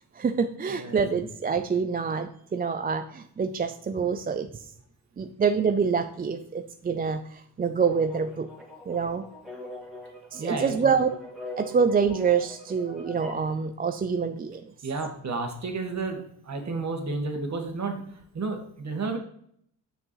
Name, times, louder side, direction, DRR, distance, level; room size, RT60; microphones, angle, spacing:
voice 1, 0.1-4.6 5.2-8.5 8.9-9.2 10.3-11.1 11.6-14.7, right 6 dB, 25° right, 8 dB, 0.4 m, -26 dB
voice 2, 0.7-1.2 10.4-10.9 14.8-18.0 18.3-19.2, right 3 dB, 45° right, 3 dB, 1.7 m, -32 dB
sound 1, 7.8-13.5, left 2 dB, ahead, 2.0 m, -43 dB
7.0 x 6.2 x 3.1 m, 0.67 s
cardioid pair, 85°, 40 cm